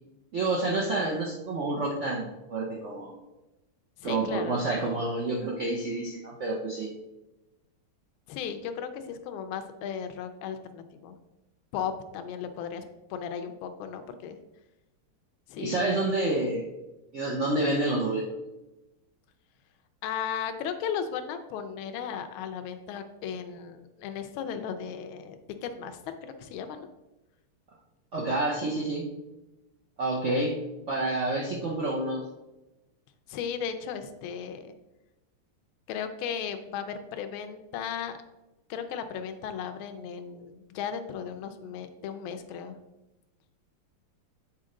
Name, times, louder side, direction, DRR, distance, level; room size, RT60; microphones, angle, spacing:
voice 1, 0.3-3.1 4.0-6.9 15.6-16.7 17.1-18.3 28.1-29.1 30.0-30.6 30.9-32.2, right 2 dB, 80° right, -3 dB, 0.6 m, -28 dB
voice 2, 4.0-4.6 8.3-11.1 11.7-12.8 13.1-14.4 15.5-16.1 20.0-26.9 33.3-34.7 35.9-38.2 38.7-42.8, left 7 dB, 75° left, 8 dB, 1.4 m, -36 dB
7.4 x 4.3 x 3.7 m, 1.0 s
omnidirectional pair, 2.4 m